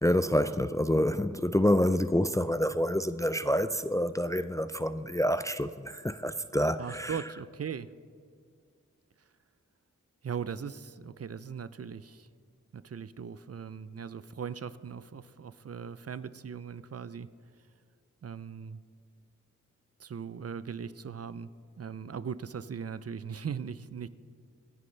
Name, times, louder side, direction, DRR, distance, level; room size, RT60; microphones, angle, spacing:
voice 1, 0.0-7.2, equal, 10° left, 0.3 m, -27 dB
voice 2, 6.8-7.9 10.2-12.3 12.7-17.3 18.2-18.8 20.0-21.5 21.8-24.1, right 7 dB, 55° right, 0.5 m, -39 dB
25.5 x 9.4 x 3.3 m
wide cardioid pair, 70°, 30 cm